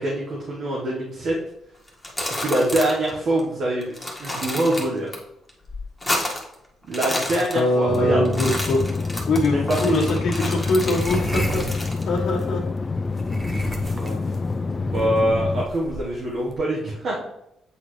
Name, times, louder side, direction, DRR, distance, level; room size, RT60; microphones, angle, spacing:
voice 1, 0.0-1.3 2.2-3.9 4.2-5.1 6.9-8.2 9.5-9.6 9.9-10.1 13.9-14.2 14.8-17.2, right 1 dB, 55° right, -4 dB, 1.3 m, -24 dB
sound 1, 1.9-3.1 3.4-3.5 3.8-5.2 5.5-6.5 6.8-8.0 8.3-12.0, left 1 dB, 10° left, 1.7 m, -30 dB
voice 2, 7.5-8.8 9.3-12.6, left 2 dB, 65° left, -7 dB, 1.2 m, -23 dB
sound 2, 7.9-15.7, left 3 dB, 30° left, 0.4 m, -27 dB
sound 3, 10.9-12.5 13.1-16.5, right 1 dB, 20° right, 1.0 m, -31 dB
8.0 x 3.9 x 3.2 m, 0.81 s
cardioid pair, 90°, 0 cm